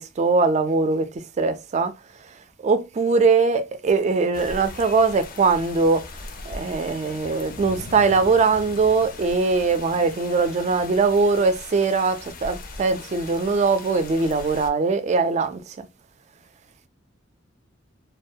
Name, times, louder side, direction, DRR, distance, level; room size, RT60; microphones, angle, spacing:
voice 1, 0.0-2.3 2.6-6.0 6.4-15.9, right 4 dB, 35° right, 0.3 m, -21 dB
sound 1, 4.3-14.7, left 3 dB, 45° left, 0.4 m, -39 dB
2.3 x 2.2 x 2.6 m
head